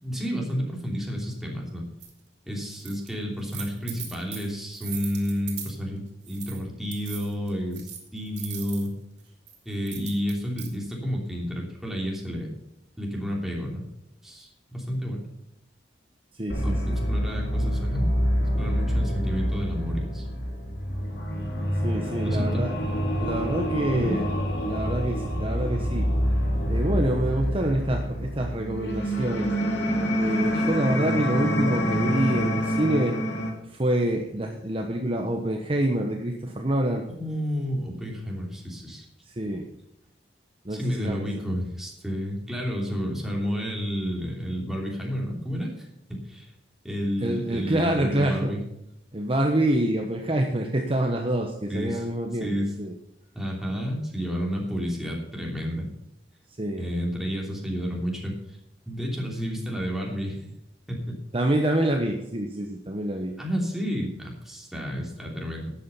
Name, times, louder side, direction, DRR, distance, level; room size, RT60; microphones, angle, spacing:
voice 1, 0.0-1.8 2.5-8.9 9.6-12.5 13.0-13.8 14.2-15.3 16.6-18.1 18.6-20.3 22.2-22.7 23.9-24.2 37.2-39.0 40.7-45.9 46.2-46.5 46.8-48.6 51.7-52.1 52.4-52.7 53.3-55.9 56.8-58.6 58.9-60.4 60.9-61.1 63.4-65.7, equal, ahead, -2 dB, 3.1 m, -30 dB
sound 1, 2.0-2.1 2.7-3.1 3.4-5.8 6.2-6.6 6.9-8.9 9.5-10.7, right 9 dB, 65° right, 3.1 m, -40 dB
voice 2, 16.4-16.8 21.8-22.7 23.2-24.3 24.6-26.1 26.7-29.5 30.2-33.2 33.7-37.0 39.4-39.7 40.6-41.2 47.2-48.5 49.1-52.9 56.6-56.9 61.3-63.4, right 1 dB, 30° right, 3 dB, 1.1 m, -26 dB
sound 2, 16.5-33.5, equal, 65° left, 2.9 m, -26 dB
12.0 x 8.7 x 5.6 m, 0.83 s
head